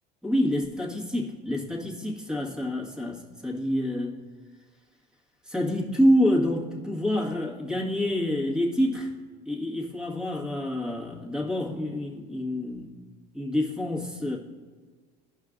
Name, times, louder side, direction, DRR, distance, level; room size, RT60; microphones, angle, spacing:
voice 1, 0.2-4.1 5.4-9.1 9.4-12.9 13.3-14.4, left 1 dB, 5° right, -3 dB, 1.7 m, -27 dB
16.0 x 5.5 x 2.6 m, 1.5 s
supercardioid pair, 110°, 21 cm